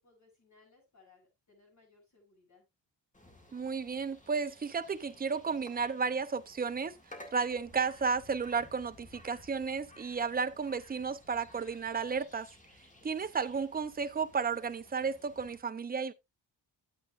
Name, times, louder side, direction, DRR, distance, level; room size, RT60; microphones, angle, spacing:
voice 1, 0.0-2.7, left 3 dB, 40° left, 7.0 m, -64 dB
sound 1, 3.1-15.6, left 1 dB, 15° left, 2.0 m, -56 dB
voice 2, 3.5-6.9 7.3-12.5 13.0-16.1, right 5 dB, 20° right, 0.5 m, -33 dB
12.0 x 8.0 x 2.4 m
wide cardioid pair, 160°, 44 cm